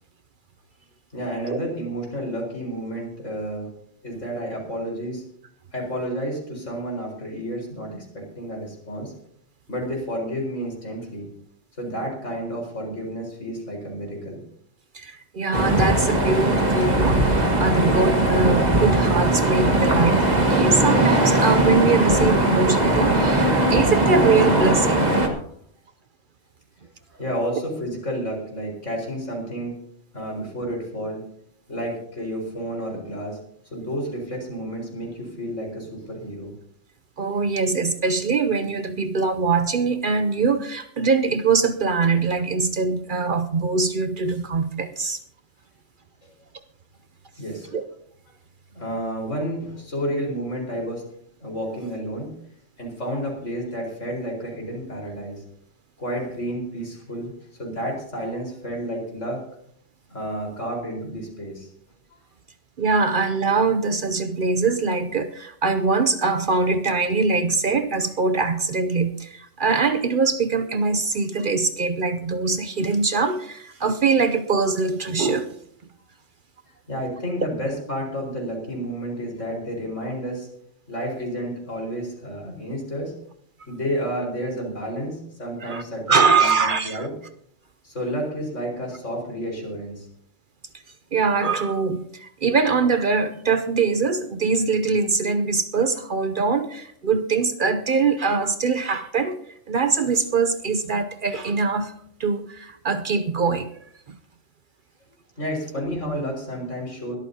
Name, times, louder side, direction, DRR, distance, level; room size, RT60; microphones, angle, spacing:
voice 1, 1.1-3.7 4.0-5.2 5.7-9.1 9.7-11.3 11.7-14.4 27.2-29.7 30.1-31.2 31.7-33.4 33.7-36.5 47.4-47.8 48.7-51.0 51.4-52.3 52.8-55.4 56.0-57.3 57.6-59.4 60.1-61.7 76.9-80.5 80.9-83.1 83.7-87.1 87.8-90.1 105.4-107.2, equal, 85° left, -1 dB, 4.9 m, -30 dB
voice 2, 14.9-25.1 37.2-45.2 47.7-47.8 62.8-75.5 85.6-85.8 86.1-87.1 91.1-99.4 99.7-101.9 102.2-103.7 104.1-104.2, right 4 dB, 50° right, 9 dB, 0.7 m, -22 dB
sound 1, 15.5-25.3, right 1 dB, 35° right, 1.8 m, -19 dB
21.5 x 13.5 x 2.8 m, 0.67 s
omnidirectional pair, 1.3 m